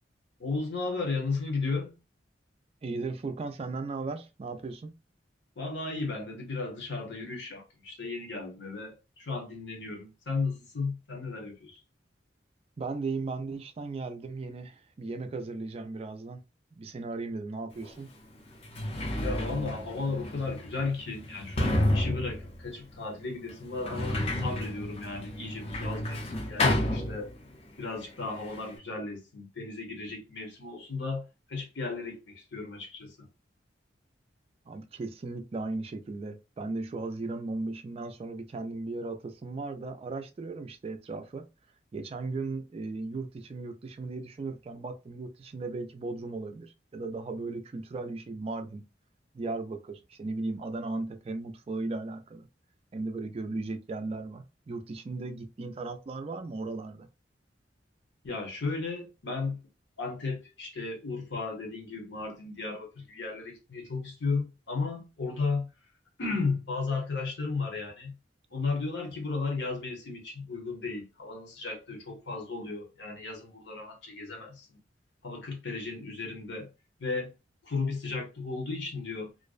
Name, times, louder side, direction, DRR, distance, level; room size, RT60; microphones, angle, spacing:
voice 1, 0.4-2.0 5.6-11.8 19.2-27.3 27.8-33.3 58.2-59.6 60.0-65.7 66.2-68.1 68.5-74.8 75.2-76.7 77.0-77.3 77.6-79.3, left 3 dB, 70° left, 0.9 m, -34 dB
voice 2, 2.8-4.9 12.8-16.4 16.7-18.1 34.7-41.5 41.9-48.8 49.3-52.5 52.9-57.1, right 3 dB, 35° right, 0.3 m, -36 dB
Sliding door, 17.8-17.9 18.5-27.7 28.0-28.8, left 1 dB, 35° left, 0.5 m, -31 dB
2.5 x 2.1 x 2.3 m
head